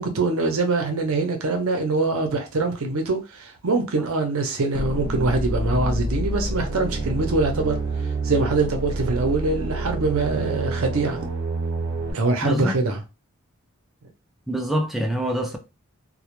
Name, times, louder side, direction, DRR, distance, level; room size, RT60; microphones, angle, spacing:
voice 1, 0.0-7.8 8.2-11.2 12.1-13.0, right 3 dB, 85° right, 0.6 m, -23 dB
sound 1, 4.7-12.1, right 2 dB, 55° right, 0.8 m, -28 dB
voice 2, 12.4-12.7 14.5-15.6, equal, ahead, 0.3 m, -25 dB
2.2 x 2.1 x 2.9 m
head